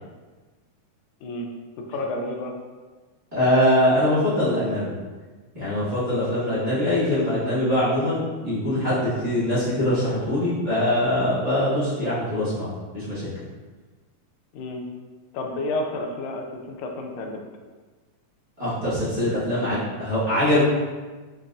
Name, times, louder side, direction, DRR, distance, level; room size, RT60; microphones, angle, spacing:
voice 1, 1.9-2.5 14.5-14.8 15.3-17.4, left 2 dB, 85° left, 2 dB, 1.9 m, -30 dB
voice 2, 3.3-4.9 5.5-12.7 12.9-13.3 18.6-20.6, left 1 dB, 35° right, -13 dB, 0.6 m, -23 dB
5.5 x 2.3 x 2.4 m, 1.3 s
omnidirectional pair, 3.4 m